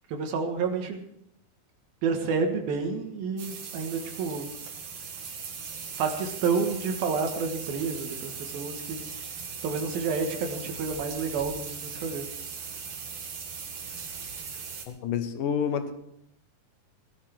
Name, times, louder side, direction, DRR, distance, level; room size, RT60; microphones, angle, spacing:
voice 1, 0.1-1.0 2.0-4.5 6.0-9.0 9.6-12.3, right 5 dB, 75° right, 4 dB, 3.2 m, -29 dB
sound 1, 3.4-14.9, right 6 dB, 55° right, 3.1 m, -39 dB
voice 2, 14.9-15.9, left 7 dB, 70° left, 8 dB, 2.5 m, -28 dB
17.5 x 12.5 x 4.5 m, 0.77 s
omnidirectional pair, 4.3 m